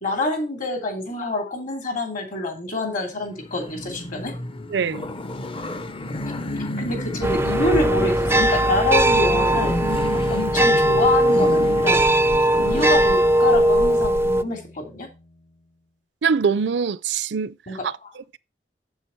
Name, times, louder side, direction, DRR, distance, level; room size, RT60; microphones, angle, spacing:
voice 1, 0.0-4.4 6.8-9.7 10.1-12.0 12.6-15.1 17.7-18.1, left 2 dB, 50° left, 2.8 m, -26 dB
sound 1, 3.2-12.9, left 1 dB, 30° left, 0.7 m, -31 dB
voice 2, 4.7-5.1 16.2-17.5 17.8-18.4, right 6 dB, 80° right, 0.5 m, -24 dB
sound 2, 7.2-14.4, right 1 dB, 15° right, 0.4 m, -19 dB
sound 3, 9.1-15.7, left 2 dB, 75° left, 1.5 m, -39 dB
7.6 x 7.2 x 4.4 m
head